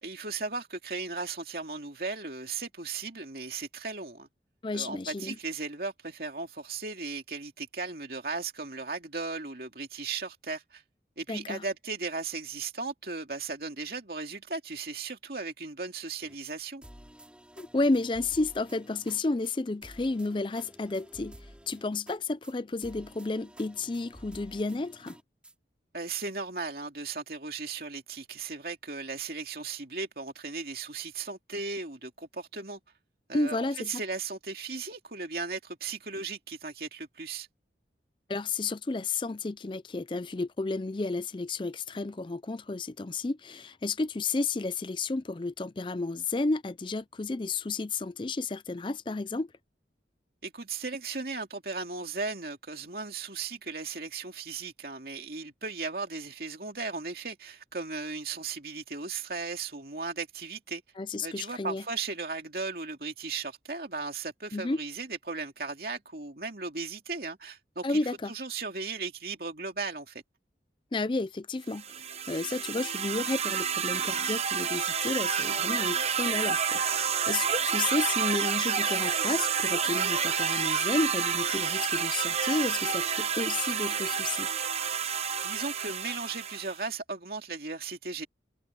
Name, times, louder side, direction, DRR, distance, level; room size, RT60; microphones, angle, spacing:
voice 1, 0.0-4.3 4.7-10.8 11.2-16.8 25.9-32.8 33.3-37.5 50.4-60.8 61.2-68.0 68.3-70.2 85.4-88.3, right 4 dB, 60° right, 2.6 m, -36 dB
voice 2, 4.6-5.4 11.3-11.6 17.6-25.2 33.3-33.9 38.3-49.5 61.0-61.8 64.5-64.8 67.8-68.3 70.9-84.5, left 3 dB, 30° left, 0.4 m, -32 dB
sound 1, 16.2-16.5 16.8-19.2 19.4-19.5 19.8-22.2 22.4-22.5 22.8-25.5, equal, 5° right, 6.1 m, -51 dB
sound 2, 71.7-86.8, right 7 dB, 35° right, 0.9 m, -29 dB
head